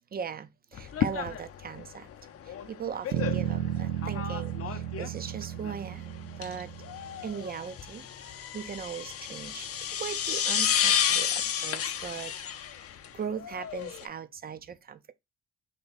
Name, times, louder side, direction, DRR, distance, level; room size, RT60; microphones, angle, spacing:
voice 1, 0.1-2.1 2.4-6.7 7.2-8.0 8.5-9.7 10.0-12.3 13.1-15.1, right 7 dB, 30° right, 0.5 m, -39 dB
sound 1, 0.7-14.1, left 9 dB, 50° left, 0.6 m, -32 dB
sound 2, 3.1-7.5, right 11 dB, 85° right, 0.7 m, -34 dB
3.5 x 2.7 x 3.9 m
cardioid pair, 90°, 30 cm